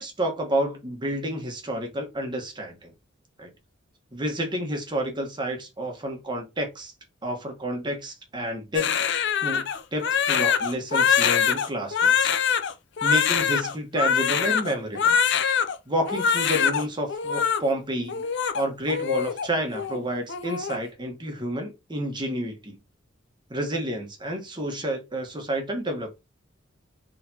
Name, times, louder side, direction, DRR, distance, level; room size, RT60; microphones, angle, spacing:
voice 1, 0.0-2.9 3.4-3.5 4.1-6.9 7.2-9.0 9.4-12.3 13.0-15.2 15.9-18.2 18.5-22.8 23.5-26.1, right 1 dB, 25° right, 1.2 m, -30 dB
Crying sobbing, 8.7-15.7 16.1-16.8 17.1-17.6 18.1-19.5 19.7-20.0 20.3-20.8, left 7 dB, 65° left, 0.5 m, -23 dB
4.3 x 3.3 x 2.8 m
head